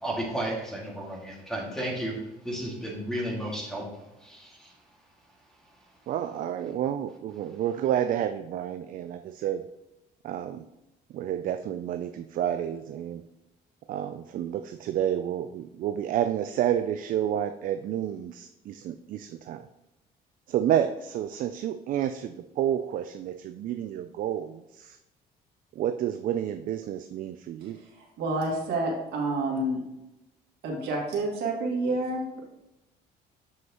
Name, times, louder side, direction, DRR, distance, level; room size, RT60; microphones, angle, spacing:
voice 1, 0.0-2.2 2.4-4.7, right 1 dB, 5° left, -2 dB, 2.0 m, -33 dB
voice 2, 6.1-9.6 10.2-10.6 11.1-13.2 13.9-19.7 20.5-25.0 25.7-27.8, right 10 dB, 55° right, 9 dB, 0.4 m, -30 dB
voice 3, 28.2-29.8 30.6-32.4, right 2 dB, 75° right, -1 dB, 2.0 m, -28 dB
7.4 x 6.3 x 3.0 m, 0.95 s
cardioid pair, 110°, 17 cm